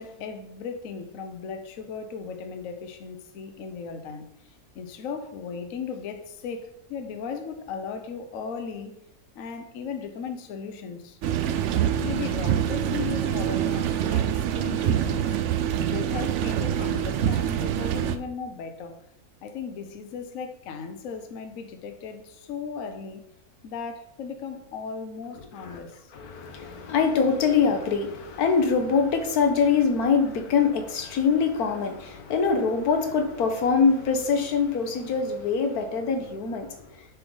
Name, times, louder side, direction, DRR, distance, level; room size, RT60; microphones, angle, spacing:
voice 1, 0.0-9.0 9.3-11.2 12.0-15.4 15.8-19.0 19.4-23.3 23.6-26.1, left 6 dB, 65° left, 1.1 m, -36 dB
sound 1, 11.2-18.2, right 10 dB, 65° right, 0.8 m, -25 dB
voice 2, 26.1-36.7, left 5 dB, 85° left, 1.4 m, -24 dB
6.8 x 5.6 x 3.8 m
omnidirectional pair, 1.6 m